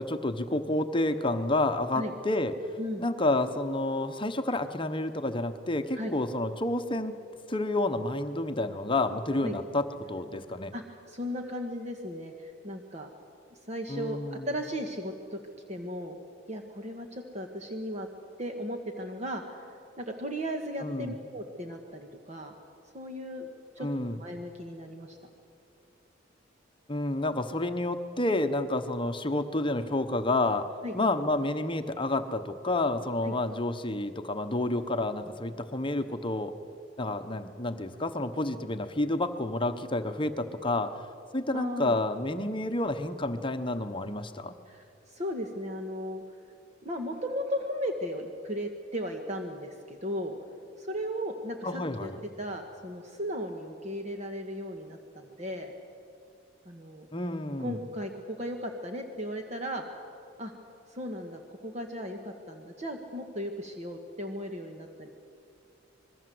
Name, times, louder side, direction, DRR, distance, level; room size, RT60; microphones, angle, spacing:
voice 1, 0.0-2.5 3.0-7.1 7.5-10.7 13.9-14.5 20.8-21.1 23.8-24.2 26.9-30.7 30.9-36.5 37.0-40.9 41.3-44.6 51.6-52.2 57.1-57.8, left 2 dB, 25° left, 8 dB, 1.0 m, -29 dB
voice 2, 10.7-13.1 13.5-15.4 15.7-16.2 16.5-18.1 18.4-22.5 22.9-23.5 23.7-23.9 24.2-25.2 30.8-30.9 33.2-33.3 41.5-42.0 44.7-46.2 46.8-50.4 50.8-52.1 52.4-55.7 56.6-57.1 57.6-59.8 60.4-60.5 60.9-65.1, equal, 35° right, 3 dB, 1.6 m, -36 dB
26.5 x 21.5 x 7.8 m, 2.6 s
head